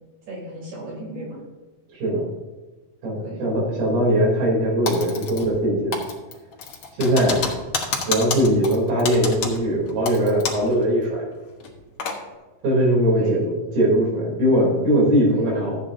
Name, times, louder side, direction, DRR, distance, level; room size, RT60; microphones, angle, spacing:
voice 1, 0.3-1.4 3.2-3.4 13.1-13.5 15.2-15.5, right 1 dB, 50° right, -3 dB, 4.7 m, -34 dB
voice 2, 1.9-2.2 3.0-6.0 7.0-7.5 8.1-11.3 12.6-15.8, right 1 dB, 85° right, -3 dB, 5.1 m, -20 dB
Typing, 4.9-5.7 5.9-10.7 11.0-11.1 11.6-12.2, left 5 dB, 60° left, 1.6 m, -29 dB
13.5 x 8.8 x 2.7 m, 1.2 s
omnidirectional pair, 4.2 m